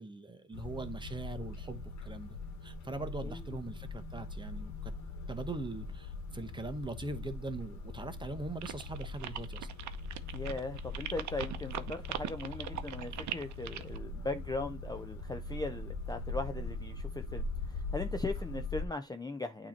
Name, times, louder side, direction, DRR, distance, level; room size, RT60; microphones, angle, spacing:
voice 1, 0.0-4.9 5.3-9.7, right 2 dB, 15° right, 0.9 m, -41 dB
sound 1, 0.5-18.9, left 3 dB, 65° left, 1.3 m, -41 dB
sound 2, 8.6-14.0, right 11 dB, 70° right, 0.7 m, -40 dB
voice 2, 10.3-19.7, left 3 dB, 15° left, 0.5 m, -39 dB
8.8 x 3.0 x 4.2 m
cardioid pair, 90°, 30 cm